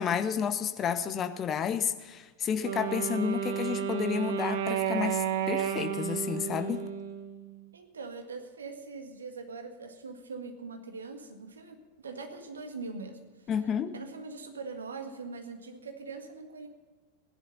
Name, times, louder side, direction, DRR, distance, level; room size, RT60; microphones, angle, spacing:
voice 1, 0.0-6.8 13.5-13.9, left 8 dB, 25° left, 11 dB, 1.0 m, -31 dB
Wind instrument woodwind instrument, 2.6-7.7, right 9 dB, 55° right, 1.0 m, -32 dB
voice 2, 7.7-13.5 13.9-16.7, right 4 dB, 70° right, 5 dB, 1.8 m, -42 dB
16.5 x 11.0 x 5.6 m, 1.4 s
figure-of-eight pair, 90°, 0 cm